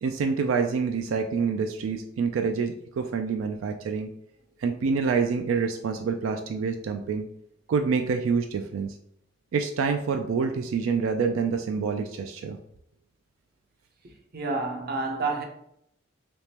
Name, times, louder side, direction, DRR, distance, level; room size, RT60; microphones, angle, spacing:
voice 1, 0.0-4.1 4.6-7.2 7.7-8.9 9.5-12.6, right 5 dB, 85° right, 0.3 m, -27 dB
voice 2, 14.3-15.4, right 3 dB, 50° right, 0.6 m, -29 dB
3.5 x 2.9 x 2.8 m
head